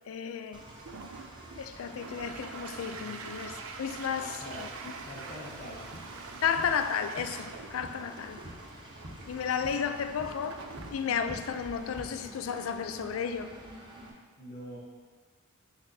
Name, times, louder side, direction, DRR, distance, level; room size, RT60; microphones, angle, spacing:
voice 1, 0.1-0.6 1.6-4.7 6.4-8.4 9.3-13.5, left 7 dB, 70° left, 9 dB, 0.4 m, -33 dB
Engine, 0.5-14.1, right 1 dB, 20° right, 0.8 m, -48 dB
Toilet flush, 0.7-13.8, right 5 dB, 80° right, 0.5 m, -47 dB
voice 2, 3.0-3.3 4.2-4.6 5.0-6.0 14.4-14.8, equal, 45° left, -4 dB, 0.9 m, -45 dB
sound 1, 5.5-12.0, right 1 dB, 65° right, 1.3 m, -49 dB
6.1 x 5.9 x 2.7 m, 1.5 s
head